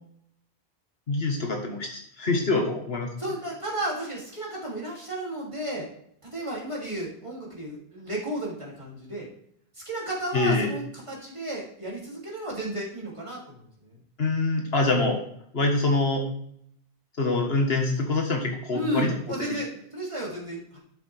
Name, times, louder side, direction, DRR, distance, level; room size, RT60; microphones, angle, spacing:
voice 1, 1.1-3.1 10.3-10.7 14.2-15.2 15.5-16.2 17.2-19.1, left 3 dB, 65° left, 2 dB, 1.7 m, -25 dB
voice 2, 3.2-5.9 6.3-9.3 9.7-14.0 14.8-15.1 18.7-20.8, right 1 dB, 30° right, -4 dB, 2.9 m, -33 dB
12.0 x 6.9 x 3.4 m, 0.68 s
omnidirectional pair, 1.1 m